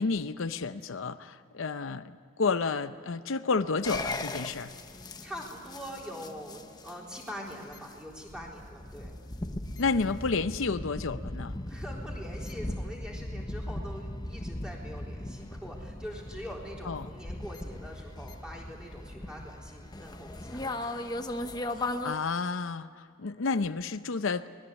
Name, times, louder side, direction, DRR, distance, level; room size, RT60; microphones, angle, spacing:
voice 1, 0.0-4.7 9.8-11.6 16.8-17.1 21.8-24.5, left 4 dB, 80° left, 11 dB, 0.7 m, -31 dB
sound 1, 3.8-22.1, left 1 dB, 20° left, 0.9 m, -38 dB
voice 2, 5.2-9.2 11.7-20.9, equal, 5° right, -2 dB, 3.9 m, -43 dB
24.5 x 20.0 x 8.2 m, 2.4 s
head